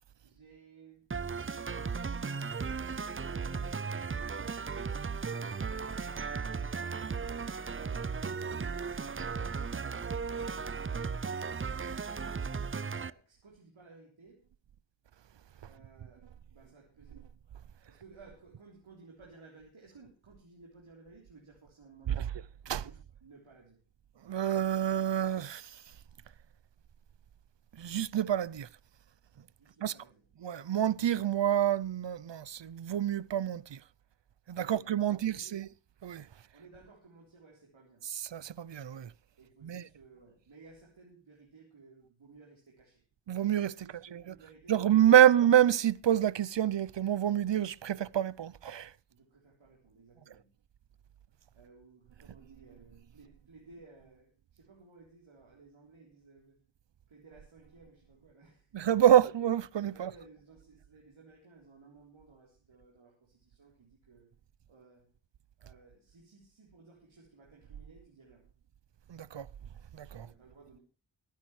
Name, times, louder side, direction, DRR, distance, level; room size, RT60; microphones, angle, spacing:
voice 1, 0.2-1.1 3.2-7.5 7.8-11.1 12.8-14.5 15.6-17.3 17.9-22.3 22.7-23.8 29.6-30.3 34.6-35.6 36.5-38.0 39.4-43.0 43.7-45.2 49.1-50.5 51.5-56.6 57.1-58.7 59.3-59.4 59.9-64.3 64.7-65.1 65.6-68.4 70.2-70.8, right 3 dB, 90° right, 3.8 m, -58 dB
sound 1, 1.1-13.1, right 5 dB, 25° right, 0.6 m, -36 dB
voice 2, 24.3-25.6 27.8-28.7 29.8-29.9 30.4-33.8 34.5-35.7 36.0-36.2 38.0-39.1 39.6-39.9 43.3-44.4 44.7-48.9 58.7-60.1 69.1-69.5 70.0-70.3, right 11 dB, 65° right, 0.7 m, -27 dB
22.5 x 10.5 x 3.2 m
wide cardioid pair, 65°, 47 cm